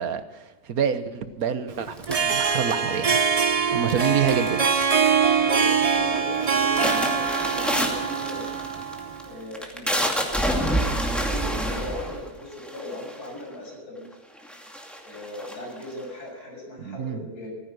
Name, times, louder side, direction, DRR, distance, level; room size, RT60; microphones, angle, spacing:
voice 1, 0.0-3.2 3.7-4.6 16.8-17.3, right 7 dB, 70° right, 11 dB, 1.5 m, -27 dB
Harp, 1.9-9.3, right 6 dB, 30° right, 0.7 m, -23 dB
sound 1, 2.0-3.1 3.9-4.5 4.7-5.2 5.6-6.0 6.3-13.4 14.1-14.2 14.4-16.0, equal, ahead, 2.4 m, -28 dB
voice 2, 3.8-4.6 5.4-8.4 9.2-14.0 15.0-17.5, left 1 dB, 90° left, -1 dB, 7.2 m, -38 dB
15.0 x 14.5 x 6.2 m, 1.2 s
omnidirectional pair, 1.6 m